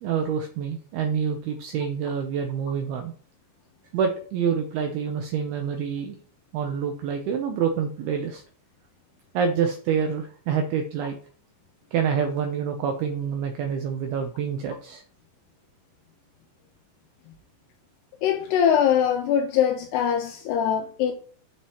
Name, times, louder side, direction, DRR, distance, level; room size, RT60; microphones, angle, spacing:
voice 1, 0.0-3.1 3.9-6.2 6.5-8.4 9.3-11.2 11.9-15.0, right 7 dB, 85° right, 2.2 m, -27 dB
voice 2, 18.2-21.1, left 9 dB, 90° left, 2.4 m, -22 dB
9.5 x 6.5 x 3.0 m
omnidirectional pair, 5.5 m